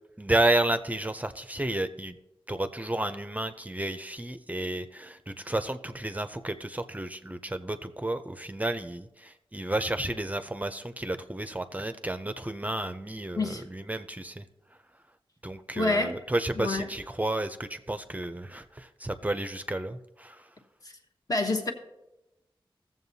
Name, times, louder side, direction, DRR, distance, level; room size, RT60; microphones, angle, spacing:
voice 1, 0.2-2.2 2.5-14.5 15.4-20.5, right 1 dB, 15° right, 0.5 m, -31 dB
voice 2, 15.7-16.1 16.6-16.9 20.8-21.0 21.3-21.7, left 2 dB, 40° left, 1.2 m, -27 dB
16.5 x 7.3 x 2.7 m
wide cardioid pair, 70°, 9 cm